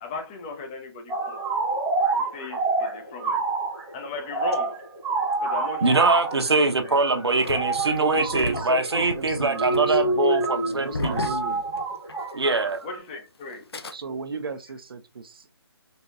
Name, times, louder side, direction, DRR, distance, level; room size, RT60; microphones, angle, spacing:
voice 1, 0.0-1.5 2.2-3.4 3.9-4.8 5.4-7.0 7.4-7.5 12.8-13.7, left 4 dB, 15° left, 0.5 m, -37 dB
sound 1, 1.1-13.0, right 3 dB, 10° right, 0.9 m, -28 dB
voice 2, 5.8-11.3 12.3-12.8, right 3 dB, 80° right, 0.8 m, -23 dB
Engine starting, 7.4-12.3 12.6-12.7 13.5-13.9, left 2 dB, 70° left, 0.7 m, -34 dB
voice 3, 8.0-10.2 10.7-11.7 13.9-15.5, right 4 dB, 60° right, 0.5 m, -35 dB
4.0 x 2.8 x 2.3 m
figure-of-eight pair, 150°, 14 cm